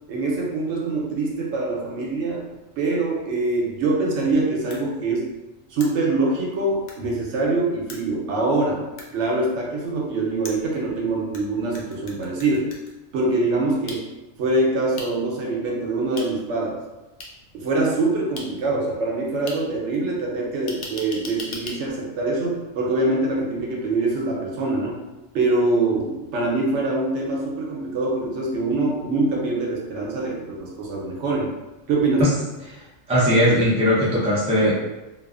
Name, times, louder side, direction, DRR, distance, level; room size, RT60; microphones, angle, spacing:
voice 1, 0.1-2.4 2.8-5.3 5.7-8.9 9.1-12.7 13.1-14.0 14.4-16.8 17.5-25.0 25.3-31.5 31.9-32.4, right 2 dB, 75° right, -2 dB, 0.9 m, -24 dB
sound 1, 4.7-4.8 5.8-5.9 6.9-7.0 7.9-8.0 9.0-9.1 10.4-11.4 11.7-12.9 13.9-14.0 15.0-15.1 16.2-16.3 17.2-17.3 18.4-18.5 19.5-19.6 20.7-21.8, left 2 dB, 60° left, 0.5 m, -36 dB
voice 2, 33.1-34.7, equal, 10° right, -7 dB, 0.3 m, -19 dB
2.4 x 2.4 x 2.3 m, 1.1 s
omnidirectional pair, 1.2 m